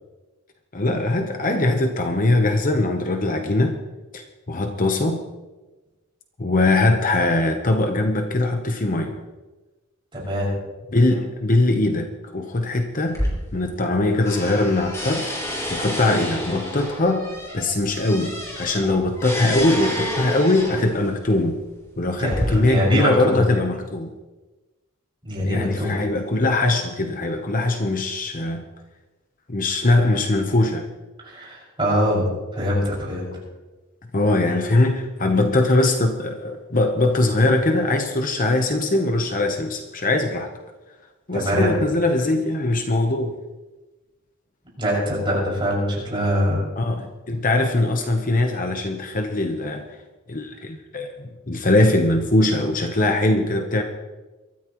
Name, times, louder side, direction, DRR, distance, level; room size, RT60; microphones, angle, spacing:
voice 1, 0.7-3.8 4.1-5.3 6.4-9.2 10.9-13.2 13.5-15.3 15.7-21.6 22.0-24.1 25.4-28.7 29.5-30.9 34.1-40.5 41.3-43.3 46.8-49.8 50.3-53.8, left 2 dB, 35° left, 5 dB, 0.9 m, -21 dB
voice 2, 10.1-10.5 22.2-23.4 25.2-26.0 31.2-32.2 32.5-33.3 41.3-41.7 44.8-46.7, equal, 20° right, -5 dB, 6.0 m, -23 dB
sound 1, 13.1-14.0 14.3-21.1 21.8-22.4, equal, 15° left, 3.2 m, -30 dB
23.0 x 13.5 x 3.1 m, 1.2 s
head